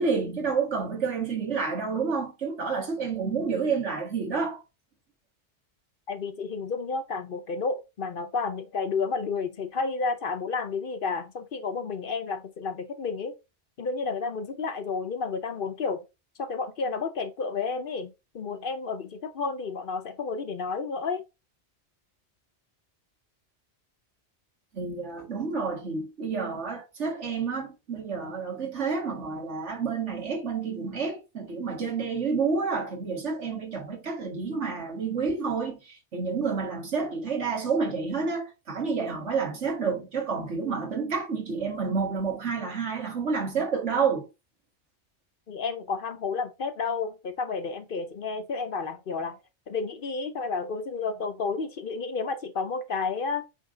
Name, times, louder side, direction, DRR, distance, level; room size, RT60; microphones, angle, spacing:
voice 1, 0.0-4.6 24.7-44.3, right 5 dB, 80° right, 2.1 m, -29 dB
voice 2, 6.1-13.3 13.8-16.0 16.4-21.2 45.5-49.4 49.7-53.4, left 4 dB, 55° left, 0.9 m, -31 dB
8.2 x 3.4 x 3.7 m
omnidirectional pair, 1.2 m